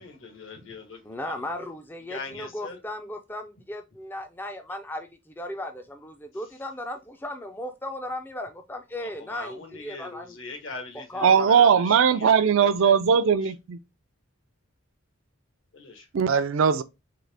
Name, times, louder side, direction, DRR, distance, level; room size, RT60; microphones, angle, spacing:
voice 1, 0.0-1.4 2.1-2.8 9.0-13.0 13.4-13.5 15.7-16.1, left 3 dB, 65° left, 1.1 m, -41 dB
voice 2, 1.0-10.4 10.9-11.6, left 1 dB, 10° left, 0.3 m, -36 dB
voice 3, 11.2-13.8 16.1-16.8, right 7 dB, 70° right, 0.4 m, -19 dB
3.8 x 2.8 x 3.2 m
head